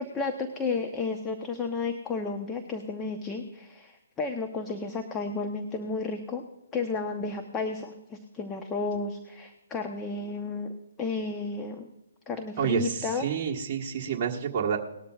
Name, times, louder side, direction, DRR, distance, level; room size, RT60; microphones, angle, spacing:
voice 1, 0.0-6.4 6.7-10.7 11.0-11.9 12.3-13.3, left 4 dB, 15° left, 4 dB, 0.9 m, -32 dB
voice 2, 12.6-14.8, right 7 dB, 30° right, -3 dB, 1.5 m, -29 dB
19.0 x 13.0 x 2.5 m, 0.92 s
hypercardioid pair, 145°, 0 cm